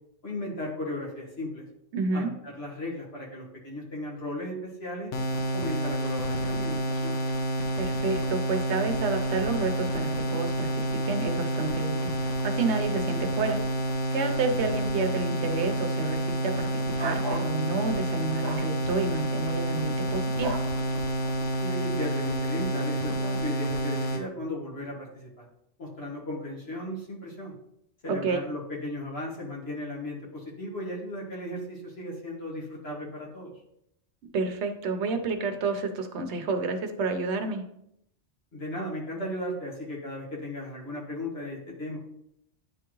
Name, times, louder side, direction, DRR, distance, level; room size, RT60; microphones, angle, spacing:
voice 1, 0.2-1.6 2.1-5.1 5.5-7.2 21.5-25.5 25.8-27.5 28.0-33.5 38.5-42.0, left 1 dB, 60° left, -3 dB, 2.0 m, -36 dB
voice 2, 1.9-2.3 7.8-13.6 14.1-20.6 28.1-28.4 34.3-37.6, right 4 dB, 70° right, 6 dB, 1.0 m, -30 dB
sound 1, 5.1-24.2, right 1 dB, 85° left, 1.1 m, -29 dB
sound 2, 17.0-17.5 18.4-18.7 20.4-20.7, right 2 dB, 35° right, 0.4 m, -34 dB
9.7 x 3.5 x 3.0 m, 0.76 s
omnidirectional pair, 1.2 m